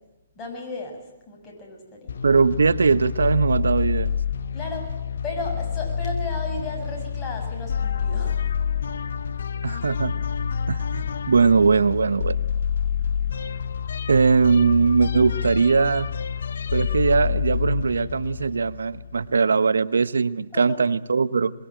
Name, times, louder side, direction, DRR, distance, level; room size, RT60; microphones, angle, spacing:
voice 1, 0.4-1.0 1.3-2.1 4.5-4.9 5.2-8.4 20.5-20.8, left 3 dB, 20° left, 0 dB, 7.4 m, -34 dB
sound 1, 2.1-19.4, left 7 dB, 70° left, 1.0 m, -28 dB
voice 2, 2.2-4.1 9.6-10.1 10.7-12.4 14.1-16.1 16.7-21.5, right 5 dB, 85° right, 17 dB, 0.9 m, -20 dB
22.5 x 22.5 x 9.1 m, 1.0 s
hypercardioid pair, 140°, 0 cm